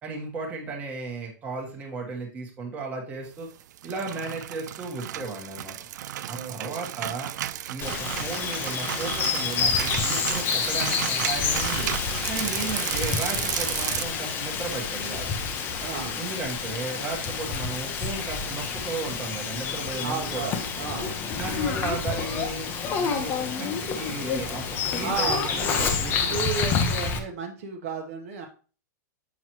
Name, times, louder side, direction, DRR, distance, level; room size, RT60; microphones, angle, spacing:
voice 1, 0.0-3.5 3.8-5.8 6.3-7.3 7.7-11.9 12.3-15.3 16.2-20.5 21.3-26.4, right 3 dB, 15° right, 0 dB, 1.3 m, -35 dB
sound 1, 3.6-14.1, right 12 dB, 70° right, 0.4 m, -33 dB
voice 2, 6.3-6.8 15.8-16.2 20.0-21.1 25.0-25.9 26.2-28.5, right 5 dB, 50° right, 3 dB, 1.1 m, -33 dB
Bird vocalization bird call bird song, 7.8-27.2, left 5 dB, 20° left, 0.7 m, -28 dB
7.3 x 5.8 x 3.0 m, 0.37 s
supercardioid pair, 170°, 10 cm